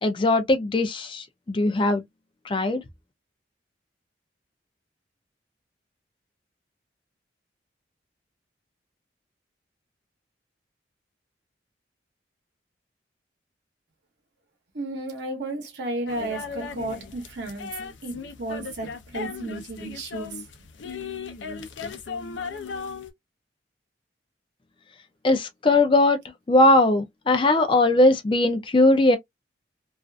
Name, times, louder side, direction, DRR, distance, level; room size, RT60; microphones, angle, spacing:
voice 1, 0.0-2.0 2.5-2.8 25.2-26.2 26.5-29.2, left 2 dB, 25° left, 0.4 m, -20 dB
voice 2, 14.7-17.7 18.0-20.4, right 2 dB, 65° right, 0.8 m, -33 dB
sound 1, 16.1-23.1, left 5 dB, 85° left, 0.5 m, -36 dB
2.4 x 2.4 x 2.2 m
head